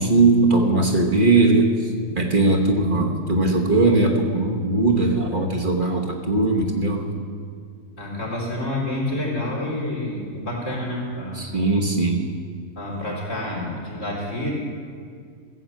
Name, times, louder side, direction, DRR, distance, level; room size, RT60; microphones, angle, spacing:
voice 1, 0.0-7.0 11.3-12.3, right 2 dB, 40° right, 0 dB, 1.3 m, -19 dB
voice 2, 8.0-11.4 12.8-14.5, left 1 dB, 65° left, -4 dB, 3.7 m, -28 dB
15.0 x 7.8 x 7.5 m, 2.1 s
omnidirectional pair, 1.4 m